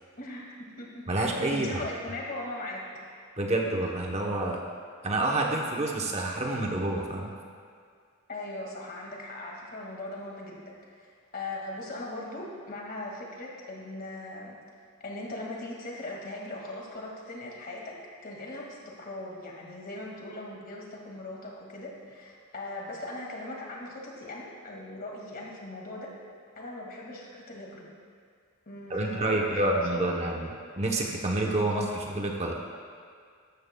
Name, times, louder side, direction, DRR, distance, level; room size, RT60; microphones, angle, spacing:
voice 1, 0.2-2.9 8.3-11.1 11.3-14.6 15.0-26.1 26.6-27.9 28.7-30.4 31.7-32.0, left 2 dB, 45° left, -2 dB, 2.0 m, -39 dB
voice 2, 1.1-1.8 3.4-4.6 5.0-7.3 28.9-30.5 30.8-32.5, right 2 dB, 30° right, 0 dB, 0.9 m, -28 dB
13.5 x 13.0 x 2.3 m, 2.1 s
head